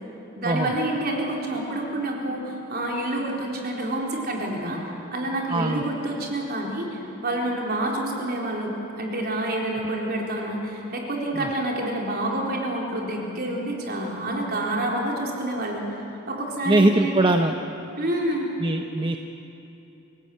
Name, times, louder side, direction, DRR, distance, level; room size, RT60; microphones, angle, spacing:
voice 1, 0.4-4.8 5.1-15.8 16.3-17.3 18.0-18.5, right 1 dB, 50° right, -1 dB, 4.2 m, -28 dB
voice 2, 5.5-5.8 11.3-11.5 16.7-17.5 18.6-19.2, right 2 dB, 25° right, 5 dB, 0.8 m, -21 dB
28.5 x 17.5 x 8.6 m, 3.0 s
head